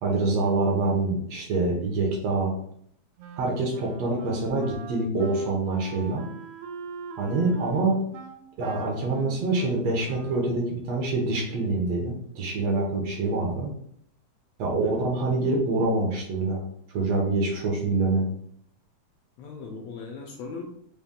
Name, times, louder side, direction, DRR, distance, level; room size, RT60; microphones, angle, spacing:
voice 1, 0.0-2.5 3.4-6.2 7.2-8.0 8.6-13.7 14.6-16.6 16.9-18.3, right 3 dB, 70° right, 0 dB, 1.8 m, -25 dB
Wind instrument woodwind instrument, 3.2-10.7, right 5 dB, 90° right, 1.3 m, -42 dB
voice 2, 19.4-20.6, left 4 dB, 80° left, 2 dB, 1.5 m, -39 dB
5.3 x 2.2 x 3.6 m, 0.67 s
omnidirectional pair, 3.3 m